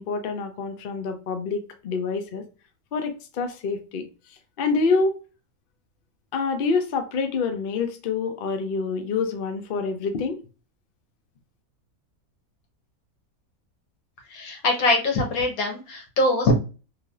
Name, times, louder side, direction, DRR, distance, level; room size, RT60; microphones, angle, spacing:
voice 1, 0.0-2.4 2.9-4.0 4.6-5.2 6.3-10.4, left 4 dB, 60° left, 0.6 m, -26 dB
voice 2, 14.3-16.5, left 2 dB, 80° left, 1.4 m, -23 dB
3.2 x 2.6 x 2.3 m
omnidirectional pair, 1.5 m